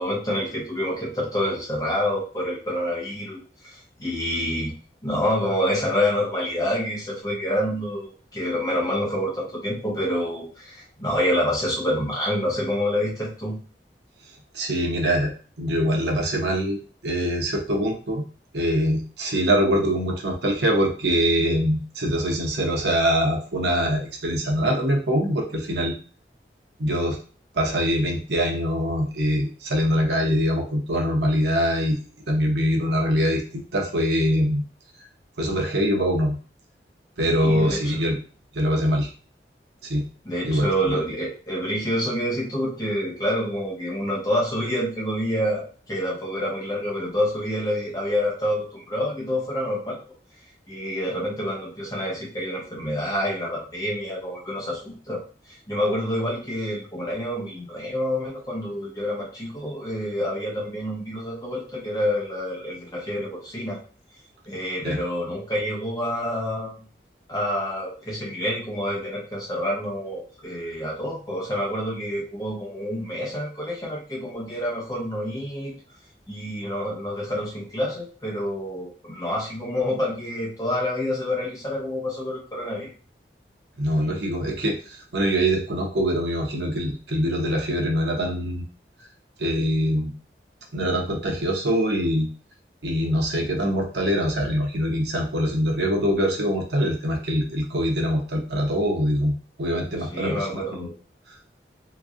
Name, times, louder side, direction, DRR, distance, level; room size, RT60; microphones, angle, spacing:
voice 1, 0.0-4.7 5.0-13.6 37.3-38.0 40.2-50.0 50.7-55.2 55.7-63.8 64.5-66.7 67.3-75.7 76.3-82.9 100.1-100.9, equal, 20° left, -4 dB, 1.0 m, -27 dB
voice 2, 14.5-15.3 15.6-16.8 17.0-18.2 18.5-25.9 26.8-27.2 27.5-32.0 32.3-34.6 35.4-36.4 37.2-38.2 38.5-39.1 39.8-40.0 40.4-41.0 64.8-65.0 83.8-88.7 89.4-90.1 90.7-92.3 92.8-100.9, equal, 80° right, 1 dB, 0.8 m, -23 dB
3.5 x 3.0 x 2.5 m, 0.38 s
head